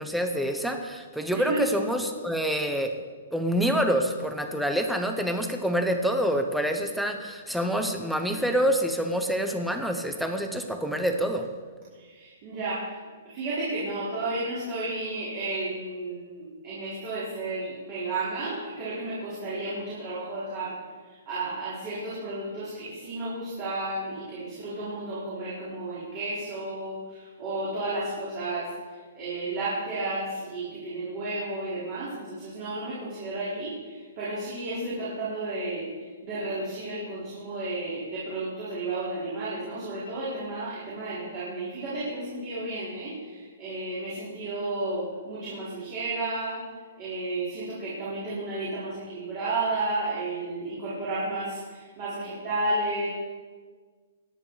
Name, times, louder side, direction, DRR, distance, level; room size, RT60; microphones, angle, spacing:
voice 1, 0.0-2.9 3.3-11.5, equal, ahead, 5 dB, 0.9 m, -27 dB
voice 2, 1.3-1.7 11.9-13.0 13.3-20.7 21.1-35.9 36.2-46.6 47.0-53.1, right 2 dB, 25° right, -9 dB, 4.8 m, -32 dB
23.5 x 10.0 x 5.1 m, 1.5 s
hypercardioid pair, 175°, 0 cm